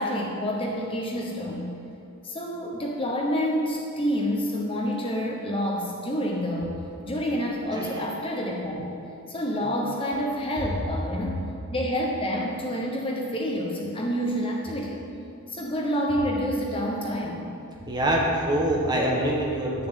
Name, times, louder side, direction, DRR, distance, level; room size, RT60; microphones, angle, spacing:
voice 1, 0.0-1.7 2.2-6.7 7.0-9.0 9.3-15.0 15.5-17.5, equal, 25° left, -1 dB, 1.0 m, -28 dB
voice 2, 17.9-19.9, right 1 dB, 20° right, -2 dB, 1.6 m, -25 dB
10.5 x 6.9 x 7.3 m, 2.7 s
head